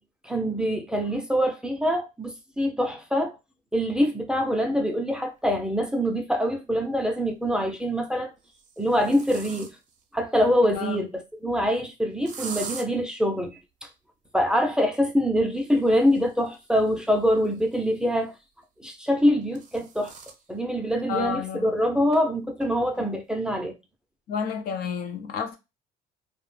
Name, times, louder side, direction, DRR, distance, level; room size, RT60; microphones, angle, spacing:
voice 1, 0.2-3.4 3.7-8.3 8.8-9.7 10.1-13.6 14.3-18.3 18.8-20.1 20.5-23.7, equal, 5° right, 0.5 m, -24 dB
sound 1, 5.9-6.0 7.4-7.8 8.4-10.0 12.3-12.9 15.5-18.1 19.1-20.4 20.9-21.0 21.3-21.4 22.1-22.2 22.6-23.0, right 5 dB, 45° right, 0.7 m, -43 dB
voice 2, 10.7-11.1 21.1-21.8 24.3-25.6, left 6 dB, 65° left, 0.5 m, -30 dB
2.4 x 2.1 x 3.1 m
cardioid pair, 110°, 17 cm